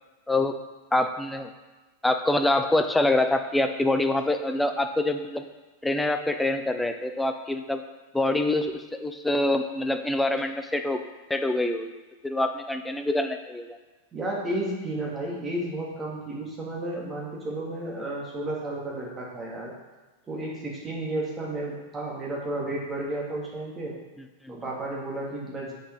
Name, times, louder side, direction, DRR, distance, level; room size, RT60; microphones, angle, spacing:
voice 1, 0.3-0.6 0.9-1.5 2.0-5.4 5.8-7.8 8.1-11.0 11.3-12.0 12.2-13.8 24.4-24.6, left 2 dB, 5° left, 7 dB, 0.7 m, -25 dB
voice 2, 14.1-19.7 20.3-23.9 24.5-25.7, right 1 dB, 20° right, -4 dB, 2.8 m, -32 dB
7.8 x 6.5 x 4.9 m, 1.2 s
figure-of-eight pair, 90°, 0 cm